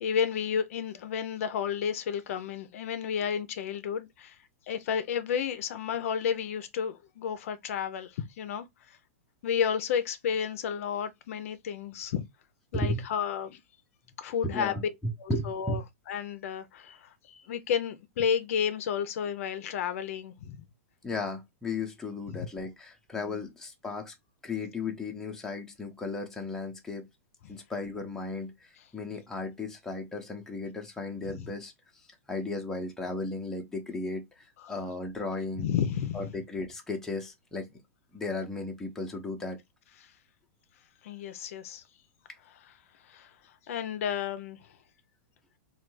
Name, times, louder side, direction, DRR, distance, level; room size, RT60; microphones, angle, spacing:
voice 1, 0.0-4.4 4.7-9.0 9.4-12.3 12.7-13.6 14.2-14.9 15.2-15.8 16.1-20.6 22.3-22.5 23.1-23.5 31.3-31.4 34.6-34.7 35.6-36.3 41.0-41.8 43.0-43.3 43.7-44.6, left 7 dB, 65° left, 0.5 m, -32 dB
voice 2, 12.7-13.0 14.4-15.8 21.0-24.1 24.4-27.1 27.5-31.7 32.3-35.7 36.1-37.7 38.1-39.6, left 2 dB, 5° left, 0.7 m, -35 dB
3.2 x 2.3 x 3.1 m
hypercardioid pair, 140°, 8 cm